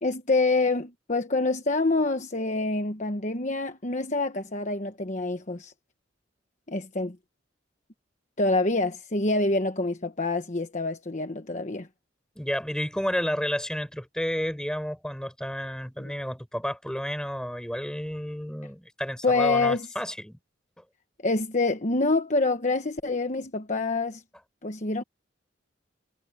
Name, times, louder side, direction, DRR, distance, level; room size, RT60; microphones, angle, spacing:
voice 1, 0.0-5.7 6.7-7.2 8.4-11.9 16.0-16.1 19.2-19.9 21.2-24.2 24.6-25.0, left 3 dB, 40° left, 1.2 m, -26 dB
voice 2, 12.4-20.4, equal, 5° left, 5.2 m, -31 dB
head